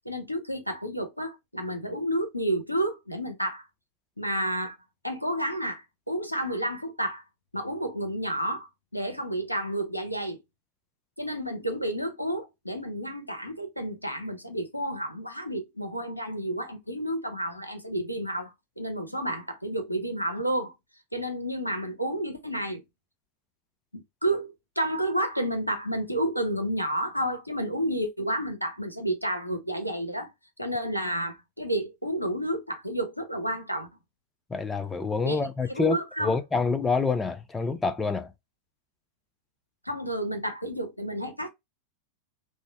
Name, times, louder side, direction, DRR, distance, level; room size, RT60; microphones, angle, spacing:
voice 1, 0.1-3.7 4.2-4.8 5.0-7.2 7.5-10.4 11.2-20.7 21.1-22.8 23.9-30.3 30.6-33.9 35.2-35.4 35.7-36.3 39.9-41.5, right 1 dB, 90° left, 0.6 m, -30 dB
voice 2, 34.5-38.3, left 4 dB, 15° left, 0.4 m, -27 dB
3.6 x 2.0 x 2.5 m
figure-of-eight pair, 90°, 0 cm